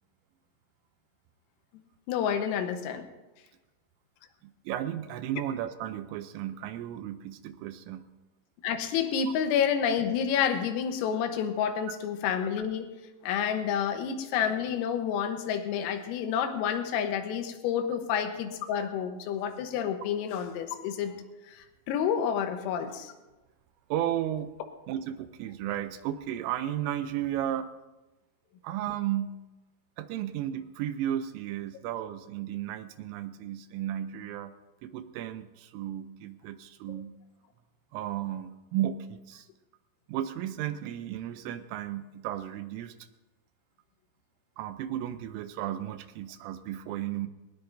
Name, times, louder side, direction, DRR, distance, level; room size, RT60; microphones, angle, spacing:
voice 1, 2.1-3.1 8.6-12.9 13.2-21.2 21.5-23.1, left 8 dB, 85° left, 7 dB, 3.7 m, -29 dB
voice 2, 4.4-8.1 23.9-24.5 24.9-27.7 28.6-29.4 30.0-34.6 34.8-37.1 37.9-39.5 40.1-42.9 44.6-47.3, right 11 dB, 80° right, 10 dB, 3.0 m, -34 dB
20.0 x 19.5 x 2.6 m, 1.1 s
omnidirectional pair, 6.0 m